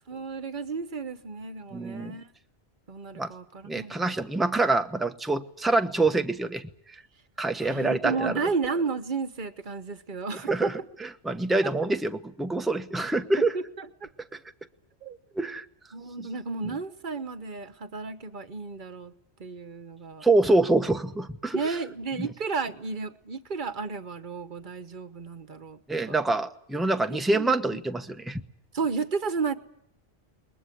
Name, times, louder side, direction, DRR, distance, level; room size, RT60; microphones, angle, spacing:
voice 1, 0.1-2.2 2.9-4.0 7.6-10.7 13.5-14.1 15.0-15.2 15.9-19.1 19.4-20.2 21.5-25.8 26.1-26.2 27.1-27.6 28.7-29.5, right 4 dB, 45° right, 12 dB, 1.2 m, -32 dB
voice 2, 1.7-2.2 3.2-3.3 3.6-6.7 7.4-8.3 10.5-10.7 11.0-13.5 15.4-15.6 20.2-21.8 22.2-22.3 25.9-28.4, right 2 dB, ahead, 7 dB, 0.9 m, -26 dB
21.0 x 20.0 x 9.9 m, 0.71 s
omnidirectional pair, 1.1 m